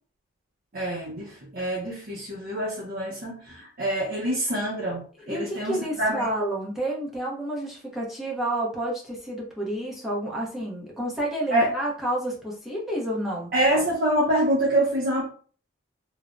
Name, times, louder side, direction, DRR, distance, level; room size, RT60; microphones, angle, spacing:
voice 1, 0.7-5.0 5.3-6.3 11.5-11.7 13.5-15.3, right 1 dB, 45° right, -4 dB, 0.6 m, -25 dB
voice 2, 5.3-13.5, right 1 dB, ahead, -4 dB, 0.6 m, -30 dB
3.2 x 2.0 x 2.4 m, 0.42 s
head